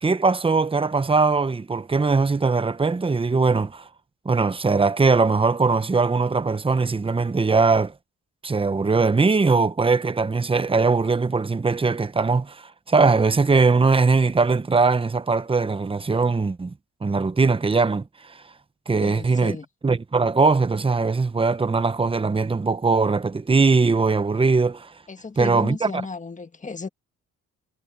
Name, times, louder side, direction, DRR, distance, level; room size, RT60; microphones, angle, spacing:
voice 1, 0.0-3.9 4.2-7.9 8.4-16.7 17.0-18.4 18.9-19.6 19.8-24.9 25.4-25.9, right 4 dB, 20° right, 1.0 m, -20 dB
voice 2, 19.0-19.7 25.1-26.9, left 4 dB, 25° left, 1.7 m, -34 dB
cardioid pair, 90°, 30 cm